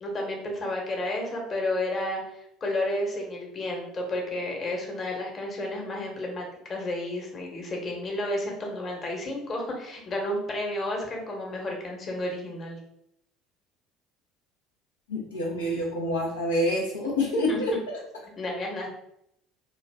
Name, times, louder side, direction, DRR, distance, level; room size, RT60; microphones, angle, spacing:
voice 1, 0.0-12.8 17.5-17.6 18.4-18.9, left 1 dB, 40° left, 0 dB, 0.9 m, -31 dB
voice 2, 15.1-18.0, left 1 dB, 90° left, -3 dB, 0.5 m, -27 dB
2.4 x 2.2 x 3.4 m, 0.77 s
hypercardioid pair, 65°, 0 cm